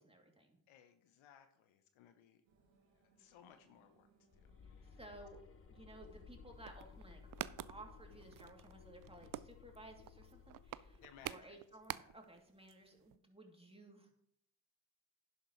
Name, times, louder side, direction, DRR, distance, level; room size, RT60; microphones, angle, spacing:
voice 1, 0.0-0.6 4.8-5.4 5.7-7.2 7.7-14.2, right 1 dB, 10° right, 1 dB, 2.8 m, -57 dB
voice 2, 0.7-2.4 2.9-4.1 4.3-5.0 11.0-11.6 11.9-12.1, left 8 dB, 70° left, 9 dB, 1.0 m, -63 dB
sound 1, 2.4-8.9, right 2 dB, 75° right, 2.5 m, -71 dB
sound 2, 4.3-11.6, left 6 dB, 30° left, 0.7 m, -59 dB
sound 3, 6.5-12.4 12.7-12.8 13.0-13.2, right 13 dB, 45° right, 0.5 m, -48 dB
11.0 x 11.0 x 3.2 m, 0.73 s
hypercardioid pair, 40°, 49 cm